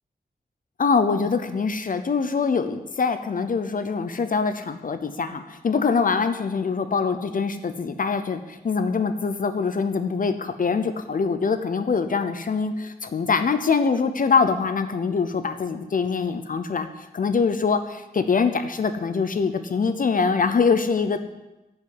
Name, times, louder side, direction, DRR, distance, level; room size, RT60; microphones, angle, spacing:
voice 1, 0.8-16.9 17.1-21.2, left 5 dB, 55° left, 9 dB, 0.7 m, -24 dB
10.5 x 5.5 x 7.9 m, 1.0 s
wide cardioid pair, 145°, 17 cm